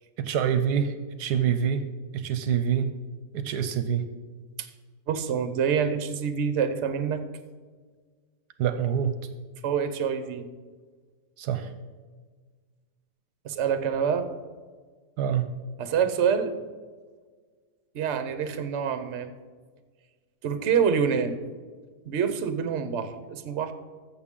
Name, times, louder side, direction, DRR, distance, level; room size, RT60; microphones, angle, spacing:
voice 1, 0.2-1.9 2.1-2.9 3.3-4.1 8.6-9.2 11.4-11.7 15.2-15.5, right 8 dB, 75° right, 10 dB, 1.1 m, -26 dB
voice 2, 5.1-7.2 9.6-10.4 13.4-14.3 15.8-16.5 17.9-19.3 20.4-21.4 22.0-23.7, right 7 dB, 50° right, 9 dB, 0.9 m, -26 dB
14.5 x 7.2 x 3.7 m, 1.5 s
omnidirectional pair, 1.8 m